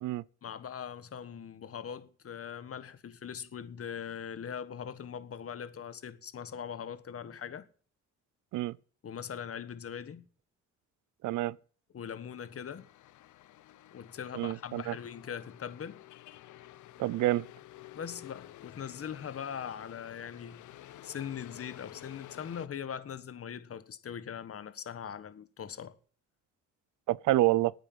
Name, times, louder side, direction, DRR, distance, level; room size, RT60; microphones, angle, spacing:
voice 1, 0.4-7.7 9.0-10.2 11.9-12.9 13.9-16.0 17.9-20.6 21.0-25.9, left 8 dB, 50° left, 1.6 m, -41 dB
voice 2, 11.2-11.6 14.3-14.9 17.0-17.5 27.1-27.7, right 16 dB, 75° right, 0.6 m, -28 dB
sound 1, 12.3-22.7, left 14 dB, 75° left, 0.8 m, -52 dB
9.6 x 9.1 x 9.5 m
cardioid pair, 90°, 30 cm